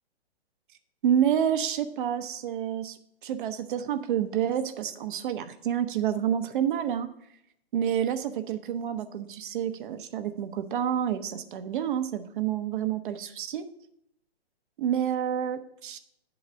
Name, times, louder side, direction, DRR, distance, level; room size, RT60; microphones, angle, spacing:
voice 1, 1.0-7.1 7.7-13.6 14.8-16.0, right 9 dB, 50° right, 9 dB, 0.8 m, -28 dB
9.9 x 4.0 x 6.1 m, 0.74 s
hypercardioid pair, 125°, 32 cm